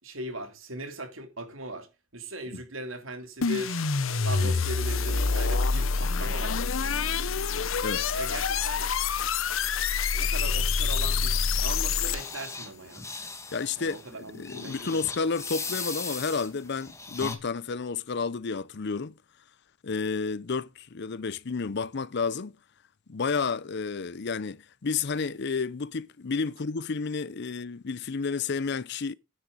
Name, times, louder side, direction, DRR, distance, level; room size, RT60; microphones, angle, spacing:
voice 1, 0.0-3.8 4.2-7.0 8.1-8.8 10.1-13.0 13.8-15.1, right 1 dB, 80° right, 3.2 m, -39 dB
sound 1, 3.4-12.5, left 5 dB, 80° left, 0.9 m, -27 dB
sound 2, 11.4-17.4, left 4 dB, 15° left, 2.1 m, -39 dB
voice 2, 13.5-14.0 14.3-19.1 19.8-22.5 23.1-29.1, left 4 dB, 55° left, 0.6 m, -31 dB
12.0 x 10.0 x 5.0 m
head